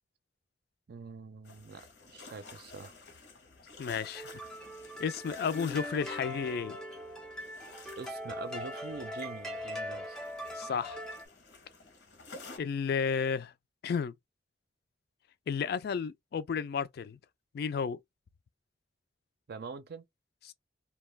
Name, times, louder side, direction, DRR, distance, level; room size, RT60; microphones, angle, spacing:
voice 1, 0.9-1.9 2.1-3.0 8.0-10.2 19.5-20.0, right 4 dB, 60° right, 0.5 m, -44 dB
sound 1, 1.4-12.6, left 3 dB, 80° left, 0.8 m, -52 dB
voice 2, 3.8-4.3 5.0-6.8 10.6-11.0 12.6-13.5 13.8-14.1 15.5-17.2 17.5-18.0 20.5-20.6, left 6 dB, 60° left, 0.3 m, -32 dB
sound 2, 4.0-11.3, left 1 dB, 5° left, 0.5 m, -41 dB
2.3 x 2.2 x 3.2 m
head